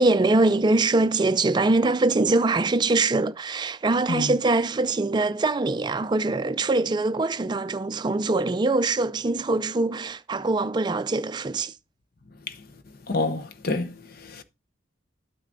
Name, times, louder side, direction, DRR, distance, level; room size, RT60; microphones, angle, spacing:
voice 1, 0.0-11.7, right 2 dB, 25° right, 0.4 m, -23 dB
voice 2, 13.1-14.4, left 2 dB, 50° left, 0.7 m, -28 dB
9.2 x 7.5 x 2.6 m
head